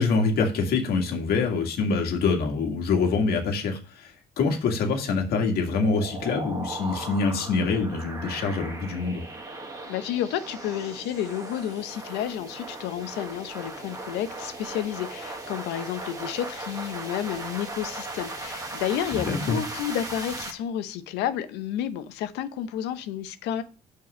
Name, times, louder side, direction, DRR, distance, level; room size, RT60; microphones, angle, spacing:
voice 1, 0.0-9.2 19.1-19.6, left 4 dB, 70° left, 2.0 m, -25 dB
sound 1, 5.7-20.5, right 2 dB, 20° right, 1.5 m, -38 dB
voice 2, 9.8-23.6, left 10 dB, 90° left, 0.8 m, -31 dB
5.8 x 4.7 x 6.2 m
cardioid pair, 110°, 17 cm